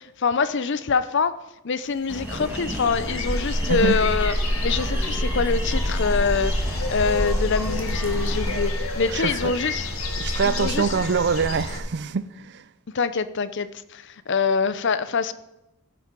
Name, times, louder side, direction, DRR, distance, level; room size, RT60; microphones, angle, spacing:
voice 1, 0.0-1.4 1.6-4.3 4.6-9.9 10.4-10.9 12.9-15.3, left 5 dB, 55° left, 0.6 m, -25 dB
sound 1, 2.1-11.8, left 1 dB, 70° left, 1.8 m, -27 dB
sound 2, 2.1-8.7, right 1 dB, 10° right, 1.6 m, -35 dB
voice 2, 9.1-9.5 10.2-12.6, right 5 dB, 50° right, 0.5 m, -25 dB
16.0 x 7.7 x 5.2 m
head